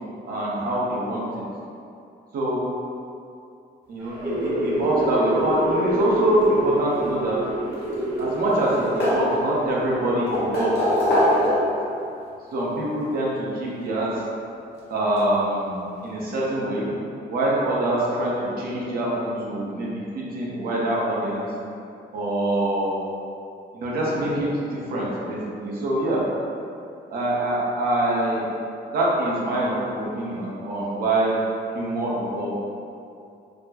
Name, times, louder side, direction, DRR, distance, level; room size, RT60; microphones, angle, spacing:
voice 1, 0.3-1.4 2.3-2.6 3.9-7.4 8.2-10.9 11.3-11.7 12.5-14.1 14.9-16.9 17.3-21.5 22.1-23.0 23.7-26.2 27.1-28.4 28.9-31.3 31.7-32.5, right 1 dB, 60° right, -5 dB, 0.8 m, -25 dB
sound 1, 4.0-11.2, right 1 dB, 15° right, 0.9 m, -28 dB
sound 2, 7.6-8.3 8.6-9.7 10.3-11.9 13.1-13.2 14.7-14.8 15.2-15.3, left 1 dB, 80° left, 1.0 m, -22 dB
4.1 x 2.0 x 2.8 m, 2.6 s
cardioid pair, 155°, 17 cm